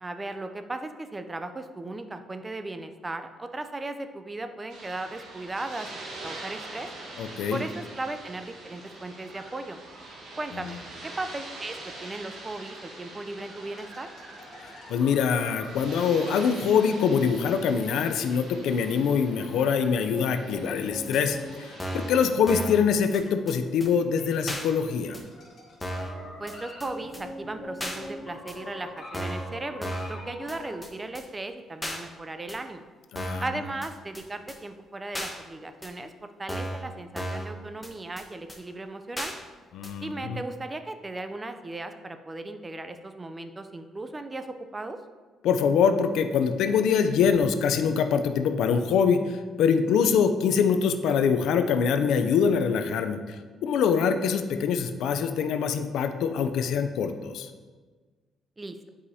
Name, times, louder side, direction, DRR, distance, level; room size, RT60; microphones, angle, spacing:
voice 1, 0.0-5.9 6.2-6.9 7.5-9.8 10.4-14.1 26.4-32.8 33.4-39.3 40.0-45.0 58.6-58.8, right 2 dB, 25° right, 8 dB, 0.5 m, -37 dB
sound 1, 4.7-22.2, right 2 dB, 75° right, 1.3 m, -44 dB
voice 2, 7.2-7.6 14.9-25.2 33.1-33.4 39.7-40.4 45.4-53.2 53.6-57.5, left 6 dB, 85° left, 8 dB, 0.4 m, -24 dB
sound 2, 13.6-16.7 17.2-22.4 22.8-30.8, left 1 dB, 55° left, 1.8 m, -44 dB
sound 3, 21.1-21.2 21.8-22.1 22.5-22.8 23.1-23.2 23.5-23.6 23.8-23.9 24.5-24.6 25.1-25.2 25.8-26.1 26.5-26.6 26.8-26.9 27.1-27.2 27.8-28.0 28.5-28.6 29.1-29.5 29.8-30.1 30.5-30.6 30.8-30.9 31.1-31.2 31.8-32.0 32.5-32.6 33.2-33.5 33.8-33.9 34.1-34.2 34.5-34.6 35.1-35.3 35.8-35.9 36.5-36.8 37.2-37.5 37.8-37.9 38.2-38.3 38.5-38.6 39.2-39.3 39.8-39.9, equal, 10° left, 1.0 m, -34 dB
8.3 x 4.9 x 2.7 m, 1.4 s
cardioid pair, 90°, 0 cm